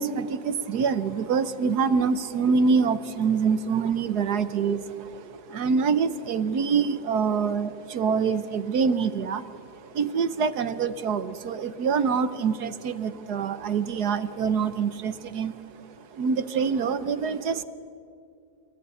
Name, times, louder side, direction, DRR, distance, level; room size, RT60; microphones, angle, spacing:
voice 1, 0.0-15.6 16.0-17.6, right 5 dB, 60° right, 14 dB, 1.4 m, -25 dB
28.0 x 21.0 x 9.7 m, 2.4 s
omnidirectional pair, 2.2 m